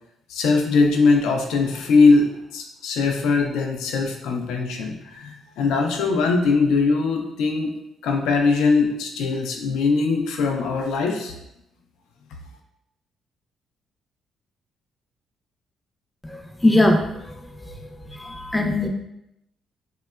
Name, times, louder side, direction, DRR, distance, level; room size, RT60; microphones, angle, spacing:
voice 1, 0.3-7.8 8.0-11.3, left 4 dB, 85° left, 2 dB, 0.3 m, -21 dB
voice 2, 16.3-17.1 18.1-18.9, left 1 dB, 10° left, 2 dB, 0.4 m, -20 dB
2.9 x 2.2 x 2.2 m, 0.84 s
cardioid pair, 90°, 0 cm